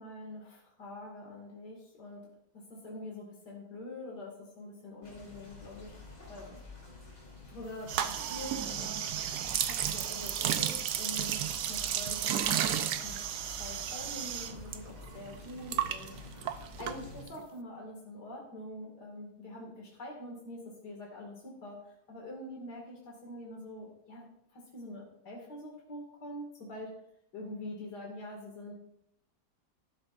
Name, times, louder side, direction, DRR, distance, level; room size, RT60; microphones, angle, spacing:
voice 1, 0.0-2.2 2.5-6.0 6.3-6.6 7.5-9.1 9.5-11.4 11.7-13.1 13.6-16.2 16.8-21.8 22.1-24.3 24.5-26.9 27.3-28.8, left 1 dB, 75° left, -2 dB, 2.8 m, -45 dB
sound 1, 5.0-17.2, left 3 dB, 50° left, 4.2 m, -50 dB
sound 2, 7.9-14.8 15.0-17.4, right 10 dB, 75° right, 1.2 m, -33 dB
12.5 x 11.5 x 2.6 m, 0.76 s
omnidirectional pair, 1.8 m